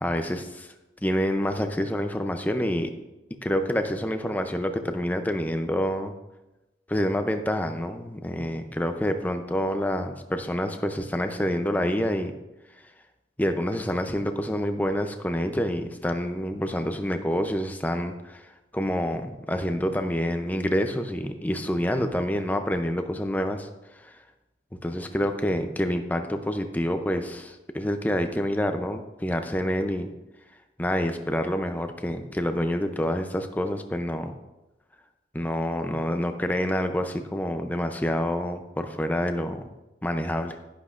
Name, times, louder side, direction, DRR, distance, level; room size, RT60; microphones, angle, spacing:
voice 1, 0.0-0.7 1.0-2.9 3.4-6.1 6.9-12.3 13.4-18.5 18.7-24.1 24.8-30.1 30.8-34.3 35.3-39.6 40.0-40.6, equal, 10° left, 7 dB, 0.5 m, -27 dB
11.0 x 10.5 x 2.5 m, 1.0 s
head